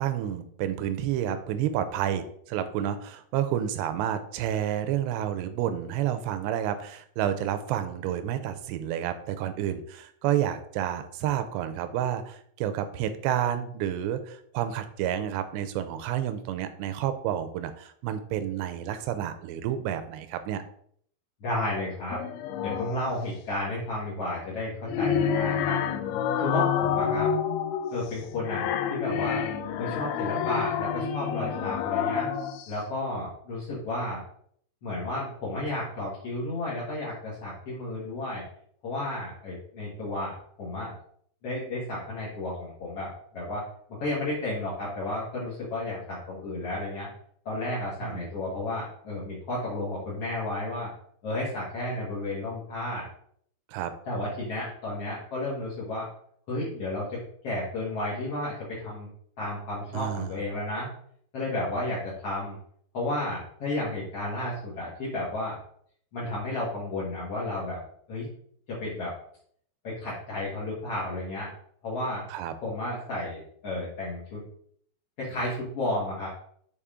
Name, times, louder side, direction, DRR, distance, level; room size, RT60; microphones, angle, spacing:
voice 1, 0.0-20.6 48.0-48.3 53.7-53.9 59.9-60.4 72.3-72.5, right 10 dB, 80° right, 10 dB, 2.6 m, -30 dB
voice 2, 21.4-22.2 22.6-25.8 26.3-27.3 27.9-29.5 29.8-32.3 32.7-34.2 34.8-38.4 38.8-40.9 41.4-43.6 44.0-47.1 47.4-50.9 51.2-53.1 54.0-56.1 56.5-57.2 57.4-59.1 59.4-60.9 61.3-62.6 62.9-65.6 66.1-67.8 68.1-68.3 68.7-69.1 69.8-71.5 71.8-72.2 72.6-74.4 75.2-76.3, left 1 dB, 60° left, -7 dB, 1.6 m, -32 dB
sound 1, 22.1-23.1 24.6-32.7, left 8 dB, 90° left, 2.2 m, -28 dB
6.8 x 4.8 x 3.7 m, 0.64 s
omnidirectional pair, 5.1 m